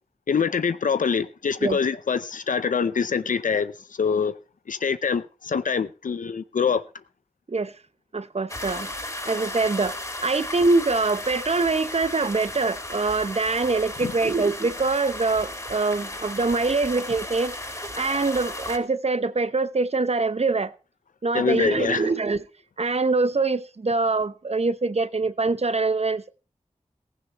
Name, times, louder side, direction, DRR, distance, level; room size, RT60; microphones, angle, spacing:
voice 1, 0.3-3.7 4.0-4.3 4.7-6.8 14.0-14.1 21.3-22.1, left 6 dB, 85° left, 0.6 m, -24 dB
voice 2, 8.1-8.9 9.3-9.9 10.2-17.5 17.8-20.7 21.2-22.4 22.8-26.3, right 3 dB, 55° right, 0.9 m, -24 dB
sound 1, 8.5-18.8, left 1 dB, 25° left, 3.6 m, -35 dB
15.5 x 15.0 x 3.0 m
cardioid pair, 45°, 13 cm